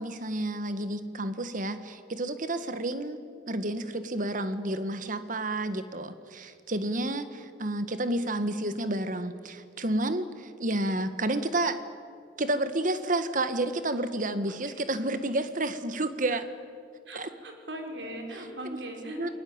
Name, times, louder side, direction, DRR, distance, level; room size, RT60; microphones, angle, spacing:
voice 1, 0.0-3.2 3.5-11.8 12.4-16.4 17.1-17.3 19.2-19.3, right 1 dB, 50° right, 11 dB, 1.6 m, -30 dB
voice 2, 17.0-19.3, right 1 dB, 80° right, 2 dB, 5.2 m, -39 dB
29.5 x 21.5 x 8.8 m, 2.3 s
head